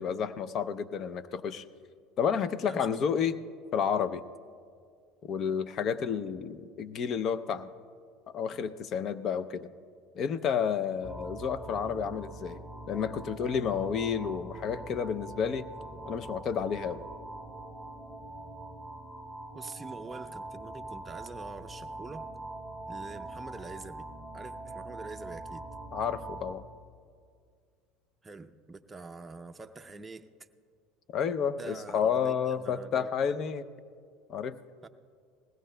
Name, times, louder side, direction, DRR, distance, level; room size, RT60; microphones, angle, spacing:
voice 1, 0.0-1.6 2.2-3.4 3.7-4.2 5.2-7.7 8.3-9.7 10.1-12.6 12.9-15.7 16.1-17.0 25.9-26.6 31.1-33.6 34.3-34.6, left 7 dB, 50° left, 0.5 m, -30 dB
voice 2, 2.6-3.2 19.5-22.3 22.9-24.1 24.3-25.6 28.2-30.3 31.6-33.3 34.8-34.9, right 3 dB, 15° right, 0.5 m, -45 dB
sound 1, 11.0-26.5, right 2 dB, 5° left, 1.8 m, -43 dB
20.5 x 16.5 x 2.2 m
supercardioid pair, 105°, 0 cm